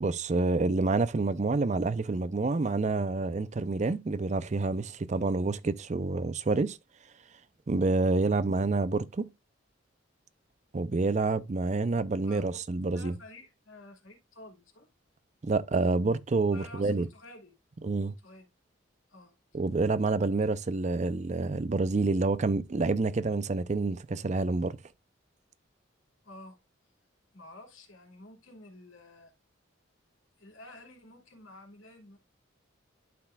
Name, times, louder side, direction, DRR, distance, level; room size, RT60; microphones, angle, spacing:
voice 1, 0.0-6.8 7.7-9.3 10.7-13.1 15.4-17.1 17.8-18.1 19.5-24.8, right 3 dB, 35° right, 0.4 m, -28 dB
voice 2, 12.2-12.6 12.8-14.9 16.5-17.6 18.2-18.5 19.1-19.6 20.4-20.5 26.2-26.6 27.3-29.3 30.4-32.2, left 2 dB, 80° left, 2.8 m, -51 dB
12.0 x 4.7 x 2.3 m
head